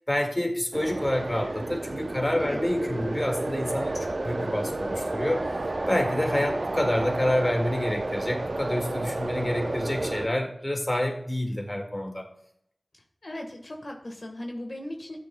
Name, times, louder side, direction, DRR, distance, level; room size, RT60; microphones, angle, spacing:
voice 1, 0.1-5.4 5.9-12.3, left 1 dB, 25° left, 3 dB, 1.8 m, -28 dB
sound 1, 0.7-10.3, right 2 dB, 60° right, 0.6 m, -31 dB
voice 2, 13.2-15.2, left 1 dB, 60° left, 1 dB, 1.3 m, -37 dB
13.5 x 8.4 x 2.2 m, 0.71 s
wide cardioid pair, 55°, 0 cm